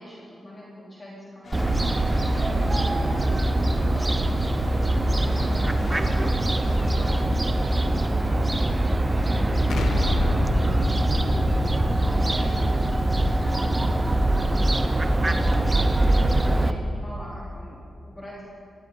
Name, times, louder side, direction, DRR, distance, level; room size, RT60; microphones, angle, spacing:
voice 1, 0.0-1.7 2.2-14.9 15.2-16.0 16.4-18.5, equal, 25° left, -6 dB, 3.5 m, -42 dB
sound 1, 1.4-7.2, left 2 dB, 60° left, 3.8 m, -39 dB
Fowl, 1.5-16.7, right 1 dB, 25° right, 0.9 m, -23 dB
Explosion, 9.7-14.5, left 2 dB, 80° left, 1.1 m, -30 dB
19.0 x 16.0 x 3.9 m, 2.5 s
cardioid pair, 70°, 0 cm